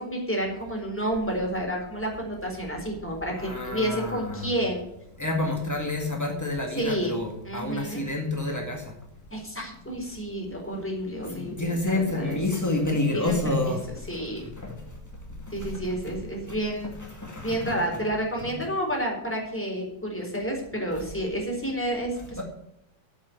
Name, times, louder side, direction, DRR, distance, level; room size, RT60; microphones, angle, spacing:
voice 1, 0.0-4.8 6.8-7.2 7.4-8.0 9.3-12.4 13.1-13.8 14.1-14.4 15.5-16.9 17.4-22.4, right 1 dB, 5° left, -1 dB, 3.8 m, -30 dB
voice 2, 3.3-4.5 5.2-9.0 11.2-16.1 16.5-16.6 16.8-17.7 18.4-18.5, left 2 dB, 20° left, 1 dB, 0.4 m, -29 dB
8.7 x 8.6 x 9.4 m, 0.83 s
omnidirectional pair, 3.7 m